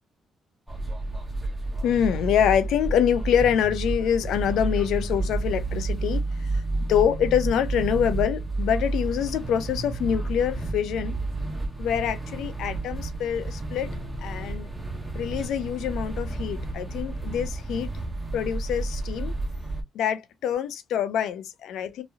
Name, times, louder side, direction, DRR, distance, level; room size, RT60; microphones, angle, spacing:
sound 1, 0.7-19.8, right 2 dB, 5° right, 1.2 m, -31 dB
voice 1, 1.8-6.2 6.8-11.1 11.8-13.9 14.2-14.7 15.1-17.9 18.3-19.3 19.9-22.0, left 9 dB, 80° left, 0.5 m, -25 dB
3.0 x 2.7 x 2.3 m
cardioid pair, 90°, 0 cm